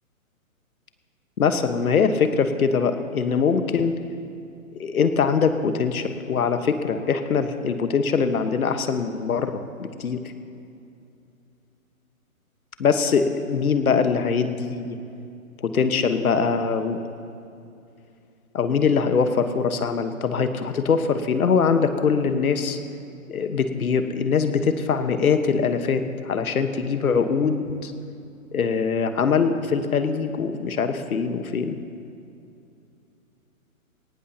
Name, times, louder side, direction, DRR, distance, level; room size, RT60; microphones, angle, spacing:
voice 1, 1.4-4.0 4.7-10.2 12.8-15.0 15.6-17.0 18.5-22.8 23.3-27.9 28.5-31.8, left 5 dB, 90° left, 8 dB, 1.3 m, -22 dB
18.5 x 18.0 x 2.9 m, 2.6 s
hypercardioid pair, 175°, 42 cm